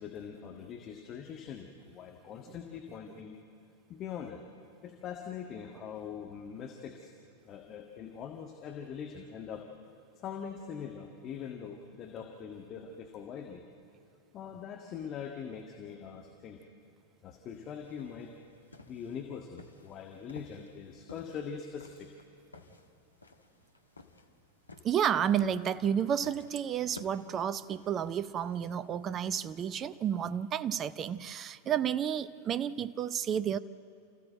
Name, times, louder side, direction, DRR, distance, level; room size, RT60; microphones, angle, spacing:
voice 1, 0.0-3.3 3.9-4.4 4.8-7.1 7.5-9.6 10.2-13.6 14.3-16.6 17.2-18.3 18.9-22.1, left 7 dB, 30° left, 2 dB, 1.6 m, -42 dB
sound 1, 17.5-29.9, left 3 dB, 80° left, 1.2 m, -55 dB
voice 2, 24.8-33.6, right 9 dB, 30° right, 17 dB, 0.6 m, -31 dB
28.5 x 15.0 x 7.8 m, 2.5 s
figure-of-eight pair, 90°, 0 cm